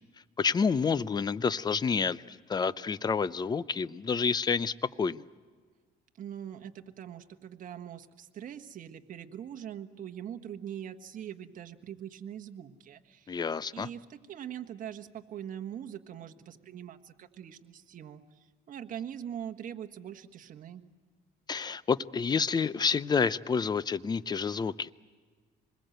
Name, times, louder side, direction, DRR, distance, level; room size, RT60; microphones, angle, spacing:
voice 1, 0.4-5.3 13.3-13.9 21.5-24.9, left 5 dB, 25° left, 0.6 m, -29 dB
voice 2, 6.2-13.4 13.7-20.8, right 9 dB, 50° right, 1.4 m, -42 dB
26.0 x 21.0 x 7.9 m
cardioid pair, 110°, 17 cm